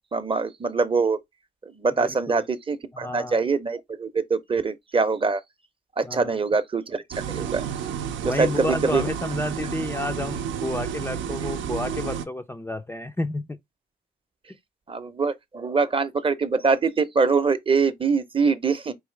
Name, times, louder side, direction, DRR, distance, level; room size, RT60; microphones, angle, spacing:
voice 1, 0.1-1.2 1.6-5.4 6.0-7.0 7.3-7.6 8.2-9.0 14.9-18.9, right 4 dB, 25° right, 0.7 m, -24 dB
voice 2, 2.0-2.4 2.9-3.4 6.0-6.4 8.2-13.6, left 2 dB, 10° left, 0.5 m, -31 dB
sound 1, 7.1-12.2, right 8 dB, 75° right, 0.7 m, -31 dB
4.8 x 3.0 x 3.2 m
cardioid pair, 90°, 20 cm